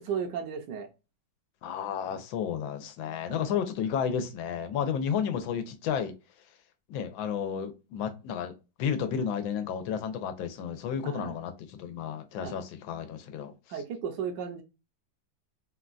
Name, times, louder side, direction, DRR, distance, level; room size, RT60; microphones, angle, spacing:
voice 1, 0.0-0.9 2.1-2.2 3.3-3.6 11.0-11.4 12.4-12.5 13.7-14.6, right 7 dB, 70° right, 1.2 m, -35 dB
voice 2, 1.6-6.1 6.9-8.5 8.8-13.5, left 7 dB, 90° left, 1.4 m, -32 dB
3.7 x 2.2 x 2.4 m
omnidirectional pair, 2.1 m